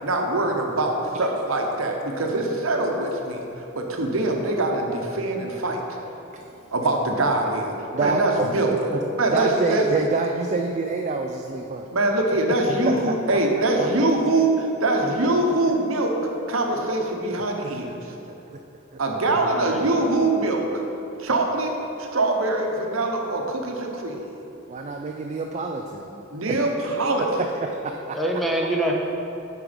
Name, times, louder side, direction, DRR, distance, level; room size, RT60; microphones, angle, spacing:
voice 1, 0.0-5.8 6.7-8.7 9.2-10.1 11.9-16.1 16.5-18.0 19.0-20.8 21.2-21.7 22.0-24.2 26.3-27.3, right 2 dB, 70° right, 2 dB, 0.9 m, -23 dB
voice 2, 7.9-8.5 8.9-11.9 12.3-12.6 12.9-13.0 17.4-17.5 18.1-18.4 24.7-26.6 27.4-28.0 28.3-28.4, right 3 dB, 35° right, 3 dB, 0.3 m, -28 dB
voice 3, 19.4-20.1 28.1-28.9, right 1 dB, ahead, -1 dB, 0.7 m, -26 dB
8.8 x 4.7 x 5.1 m, 2.9 s
head